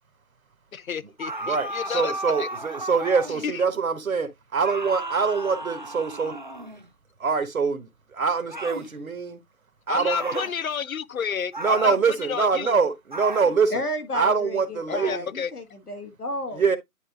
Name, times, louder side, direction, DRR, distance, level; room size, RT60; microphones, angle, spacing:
voice 1, 0.7-2.5 3.4-3.6 9.9-12.8 14.9-15.5, left 7 dB, 65° left, 0.6 m, -31 dB
sound 1, 1.2-3.5 4.6-6.9 8.5-8.9 10.1-10.6 11.5-12.0 13.1-13.6, right 1 dB, 35° right, 0.6 m, -34 dB
voice 2, 1.4-6.4 7.2-9.4 9.9-10.4 11.6-13.8 14.1-15.3 16.5-16.8, right 5 dB, 65° right, 1.3 m, -24 dB
voice 3, 13.7-16.6, left 1 dB, 90° left, 1.8 m, -32 dB
10.0 x 4.1 x 2.3 m
figure-of-eight pair, 160°, 44 cm